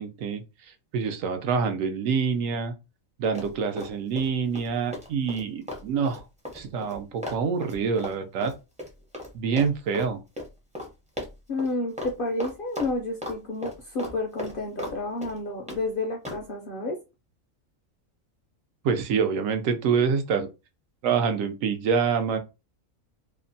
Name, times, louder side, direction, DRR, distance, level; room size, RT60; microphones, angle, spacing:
voice 1, 0.0-2.7 3.2-6.2 6.5-8.5 9.3-10.2 18.8-20.5 21.0-22.4, right 6 dB, 80° right, 1.0 m, -26 dB
Run, 3.3-4.3 4.5-9.3 9.6-10.1 10.4-10.5 10.7-10.9 11.2-11.7 12.0-12.1 12.4-13.4 13.6-15.0 15.2-15.8 16.2-16.4, left 1 dB, 10° right, 0.4 m, -36 dB
voice 2, 11.5-17.0, left 2 dB, 65° left, 0.5 m, -30 dB
2.7 x 2.1 x 2.6 m
omnidirectional pair, 1.4 m